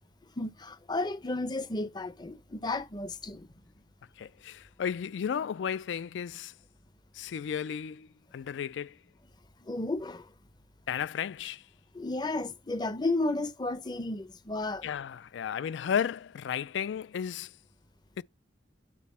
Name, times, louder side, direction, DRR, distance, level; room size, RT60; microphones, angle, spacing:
voice 1, 0.4-3.5 9.6-10.3 11.9-14.9, left 2 dB, 20° left, 0.6 m, -33 dB
voice 2, 4.2-6.5 7.1-9.0 10.9-11.7 14.8-17.5 18.2-18.3, left 8 dB, 70° left, 0.3 m, -34 dB
9.3 x 4.2 x 4.2 m
head